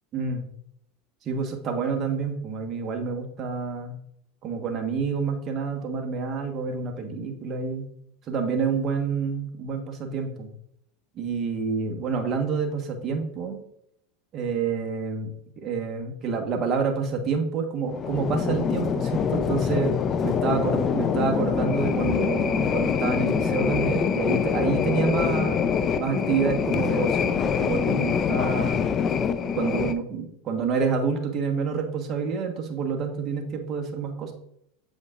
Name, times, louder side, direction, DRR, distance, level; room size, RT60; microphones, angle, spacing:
voice 1, 0.1-0.5 1.2-4.0 4.4-7.9 8.3-10.5 11.1-13.6 14.3-20.0 20.2-25.7 26.0-28.8 29.4-34.3, right 5 dB, 35° right, 3 dB, 1.3 m, -28 dB
sound 1, 17.9-29.9, left 7 dB, 35° left, 0.5 m, -25 dB
7.9 x 5.2 x 2.5 m, 0.75 s
supercardioid pair, 110°, 0 cm